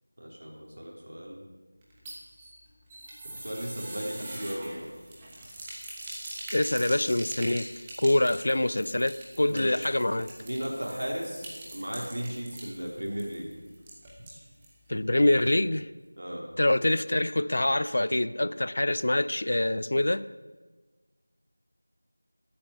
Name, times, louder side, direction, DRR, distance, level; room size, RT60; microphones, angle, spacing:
voice 1, 0.2-1.4 3.3-4.9 9.5-9.8 10.4-13.5 16.2-16.4, equal, 70° right, 3.9 m, -36 dB
sound 1, 1.8-14.8 15.1-15.2 15.5-15.6, right 1 dB, 10° right, 1.1 m, -43 dB
voice 2, 6.5-7.7 8.0-10.3 14.9-15.9 16.6-20.3, left 1 dB, 50° left, 0.4 m, -25 dB
11.5 x 8.8 x 8.1 m
figure-of-eight pair, 175°, 0 cm